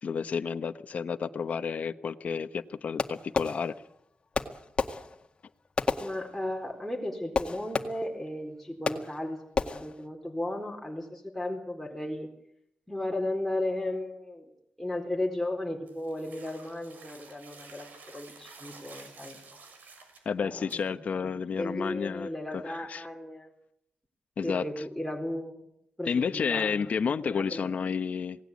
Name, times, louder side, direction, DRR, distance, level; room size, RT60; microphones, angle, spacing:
voice 1, 0.0-3.7 20.2-23.0 24.4-24.7 26.1-28.4, left 6 dB, 60° left, 9 dB, 1.1 m, -31 dB
Fireworks, 3.0-4.0 4.3-6.7 7.3-8.3 8.9-9.3 9.6-10.1, left 4 dB, 40° left, 1.9 m, -32 dB
voice 2, 6.0-12.3 12.9-14.5 14.8-19.4 20.4-21.0 21.6-23.5 24.4-25.7 26.0-26.9 27.2-27.8, left 1 dB, ahead, -1 dB, 4.1 m, -35 dB
sound 1, 15.9-20.3 20.7-20.8, right 4 dB, 90° right, 6.5 m, -51 dB
27.5 x 18.5 x 8.4 m, 0.77 s
wide cardioid pair, 120°, 3 cm